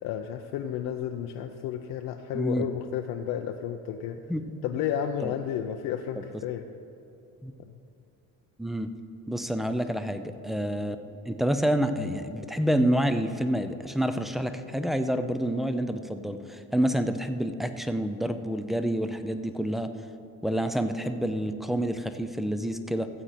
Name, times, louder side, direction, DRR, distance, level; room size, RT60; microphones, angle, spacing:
voice 1, 0.0-4.2 4.6-6.7 7.7-7.8 9.7-9.8, left 9 dB, 85° left, 4 dB, 0.6 m, -32 dB
voice 2, 2.3-2.7 4.3-4.6 5.2-5.3 7.4-7.5 8.6-9.0 9.3-11.0 11.3-19.9 20.4-23.1, equal, ahead, 9 dB, 0.4 m, -28 dB
14.5 x 7.7 x 4.2 m, 2.8 s
cardioid pair, 135°, 33 cm